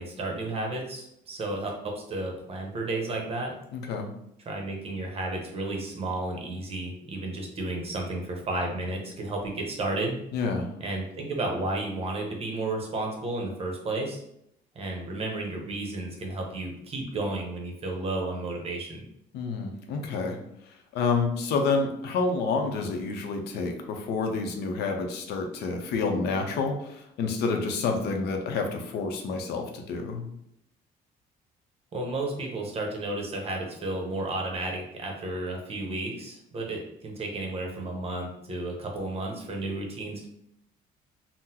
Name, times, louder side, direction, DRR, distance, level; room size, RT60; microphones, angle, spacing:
voice 1, 0.0-3.5 4.5-10.2 10.8-14.2 14.7-19.0 31.9-40.3, right 2 dB, 35° right, 1 dB, 0.8 m, -32 dB
voice 2, 3.7-4.1 10.3-10.7 19.3-20.4 20.9-30.3, left 4 dB, 75° left, 3 dB, 0.6 m, -28 dB
3.7 x 2.0 x 2.8 m, 0.76 s
cardioid pair, 110°, 17 cm